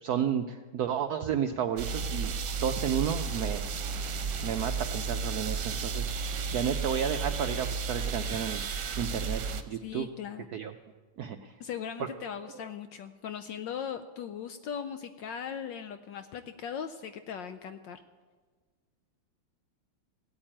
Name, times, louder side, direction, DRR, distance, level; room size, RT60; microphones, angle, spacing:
voice 1, 0.0-2.3 2.6-3.6 4.4-8.6 9.0-9.4 9.7-10.1 10.5-10.7 11.2-11.5 12.0-12.1, right 8 dB, 90° right, 7 dB, 0.8 m, -32 dB
sound 1, 1.8-9.6, right 4 dB, 60° right, 1.4 m, -33 dB
voice 2, 9.8-10.5 11.6-18.0, left 8 dB, 75° left, 9 dB, 1.2 m, -39 dB
16.5 x 8.8 x 8.8 m, 1.4 s
omnidirectional pair, 2.3 m